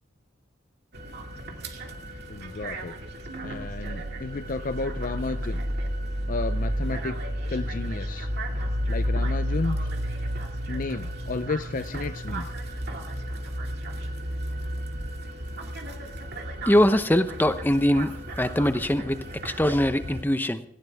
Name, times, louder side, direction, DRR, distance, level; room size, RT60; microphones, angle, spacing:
sound 1, 0.9-20.2, equal, 60° right, 2.3 m, -32 dB
voice 1, 2.3-2.9 3.4-5.6 6.3-7.2 7.5-8.3 8.9-9.8 10.1-10.2 10.7-12.5, left 3 dB, 45° left, 11 dB, 0.5 m, -32 dB
voice 2, 16.7-20.6, left 1 dB, 10° left, 10 dB, 0.8 m, -23 dB
18.0 x 16.5 x 3.5 m, 0.70 s
head